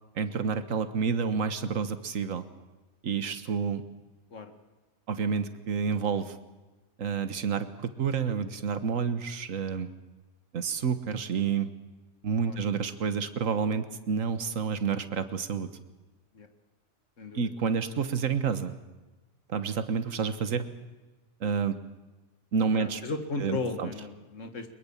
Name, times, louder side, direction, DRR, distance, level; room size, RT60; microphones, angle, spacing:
voice 1, 0.1-2.5 3.0-3.8 5.1-6.3 7.0-9.9 10.5-11.7 12.2-15.7 17.3-18.8 19.5-20.6 21.4-21.8 22.5-23.0 23.4-23.9, right 6 dB, 70° right, 11 dB, 1.7 m, -29 dB
voice 2, 17.2-17.5 22.7-24.8, left 3 dB, 65° left, 7 dB, 2.2 m, -36 dB
22.5 x 22.0 x 7.3 m, 1.2 s
omnidirectional pair, 1.4 m